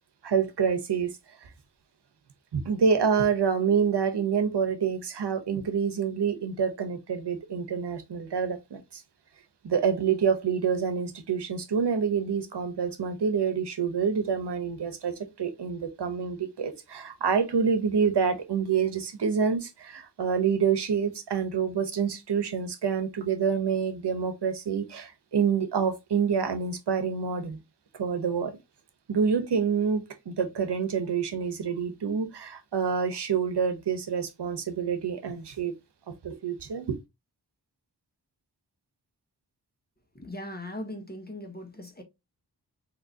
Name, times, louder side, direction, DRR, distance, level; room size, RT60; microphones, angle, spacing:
voice 1, 0.2-1.1 1.4-1.5 2.5-9.0 9.6-27.6 28.0-28.5 29.1-35.7 36.2-37.0, right 6 dB, 75° right, 0.9 m, -27 dB
voice 2, 40.1-42.0, left 1 dB, 25° left, 1.2 m, -39 dB
3.7 x 2.9 x 2.7 m
cardioid pair, 40°, 41 cm